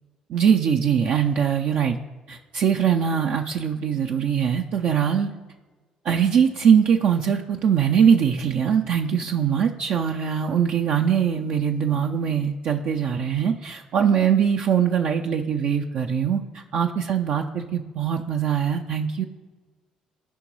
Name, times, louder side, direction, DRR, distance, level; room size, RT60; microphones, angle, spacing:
voice 1, 0.3-2.0 2.3-5.3 6.0-19.2, right 7 dB, 60° right, 3 dB, 0.4 m, -22 dB
15.0 x 5.2 x 3.1 m, 1.3 s
hypercardioid pair, 50°, 3 cm